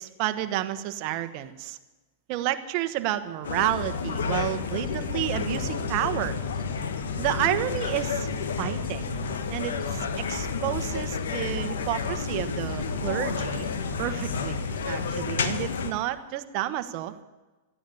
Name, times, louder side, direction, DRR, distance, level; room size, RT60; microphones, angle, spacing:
voice 1, 0.0-1.8 2.3-6.4 7.2-8.3 8.6-9.1 9.5-13.7 14.0-17.1, right 14 dB, 45° right, 10 dB, 1.2 m, -30 dB
sound 1, 3.4-15.9, left 5 dB, 85° left, 1.4 m, -30 dB
sound 2, 4.8-15.2, right 5 dB, 10° right, 3.1 m, -44 dB
13.5 x 9.4 x 9.6 m, 1.2 s
hypercardioid pair, 130°, 0 cm